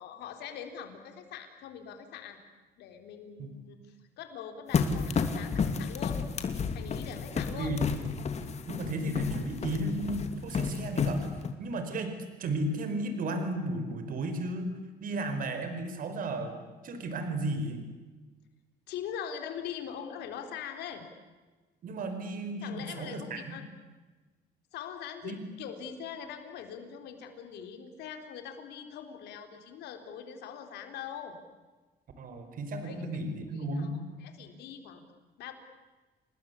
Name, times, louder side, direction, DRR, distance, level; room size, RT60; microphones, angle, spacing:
voice 1, 0.0-2.4 2.8-6.2 6.7-7.8 18.9-21.0 22.6-23.6 24.7-31.4 32.8-33.2 33.5-35.0 35.4-35.5, left 8 dB, 80° left, 6 dB, 4.1 m, -42 dB
sound 1, 4.7-11.5, left 5 dB, 40° left, 2.7 m, -31 dB
voice 2, 7.3-7.9 8.7-12.1 12.4-14.7 15.0-16.6 16.8-17.8 21.8-23.5 25.2-25.4 32.2-33.9, right 1 dB, 55° right, 8 dB, 5.1 m, -34 dB
29.5 x 20.0 x 8.5 m, 1.3 s
cardioid pair, 110°, 17 cm